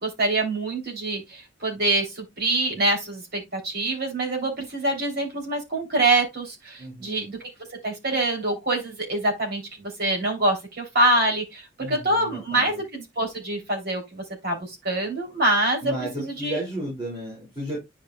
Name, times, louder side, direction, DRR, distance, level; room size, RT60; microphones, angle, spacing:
voice 1, 0.0-7.4 7.8-9.6 10.0-16.6, right 2 dB, 55° right, 3.3 m, -25 dB
voice 2, 6.8-7.3 11.8-12.8 15.8-17.8, right 1 dB, 25° right, 5.2 m, -33 dB
10.5 x 5.0 x 2.3 m
head